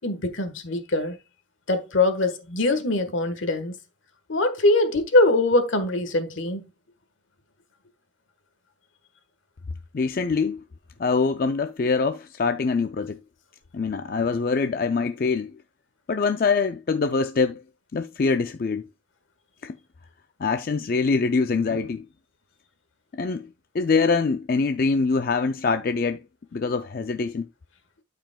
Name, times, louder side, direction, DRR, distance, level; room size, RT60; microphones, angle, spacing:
voice 1, 0.0-1.2 1.7-3.8 4.3-6.6, left 2 dB, 80° left, 1.4 m, -22 dB
voice 2, 9.9-10.6 11.0-13.2 13.7-15.5 16.1-17.6 17.9-18.9 19.6-19.8 20.4-22.1 23.1-23.5 23.7-26.2 26.5-27.5, left 4 dB, 45° left, 0.4 m, -24 dB
12.5 x 5.0 x 2.3 m
head